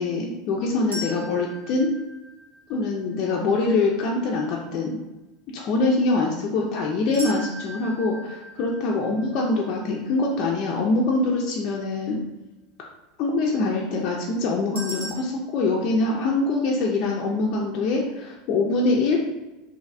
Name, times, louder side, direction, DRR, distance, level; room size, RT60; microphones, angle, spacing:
voice 1, 0.0-1.9 2.7-5.0 5.5-12.2 13.2-19.2, left 3 dB, 45° left, -2 dB, 0.4 m, -24 dB
sound 1, 0.9-3.0 7.1-10.2 14.8-15.1, left 1 dB, 75° right, 0.9 m, -39 dB
3.1 x 2.6 x 2.4 m, 1.1 s
figure-of-eight pair, 80°, 0 cm